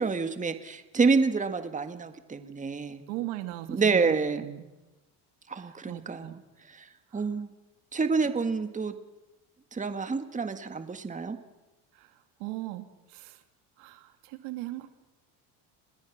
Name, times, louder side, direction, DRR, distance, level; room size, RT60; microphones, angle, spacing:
voice 1, 0.0-3.0 3.7-4.4 5.5-6.4 6.7-7.5 7.9-8.9 9.7-11.4, right 4 dB, 20° right, 9 dB, 1.7 m, -28 dB
voice 2, 3.1-4.1 4.4-4.6 5.6-6.4 7.1-7.3 8.2-8.3 11.9-13.4 13.8-14.9, right 16 dB, 80° right, 8 dB, 2.6 m, -39 dB
29.0 x 20.5 x 6.1 m, 1.1 s
supercardioid pair, 100°, 41 cm